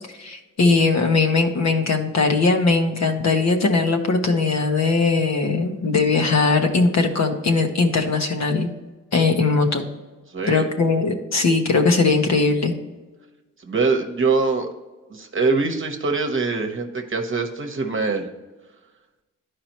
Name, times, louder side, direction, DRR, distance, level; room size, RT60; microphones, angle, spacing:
voice 1, 0.2-8.7 9.1-9.9 10.5-12.7, left 3 dB, 55° left, 4 dB, 1.2 m, -20 dB
voice 2, 10.3-10.7 13.6-14.7 15.1-18.3, right 4 dB, 40° right, 3 dB, 1.1 m, -23 dB
11.5 x 4.9 x 3.0 m, 1.2 s
cardioid pair, 75°, 32 cm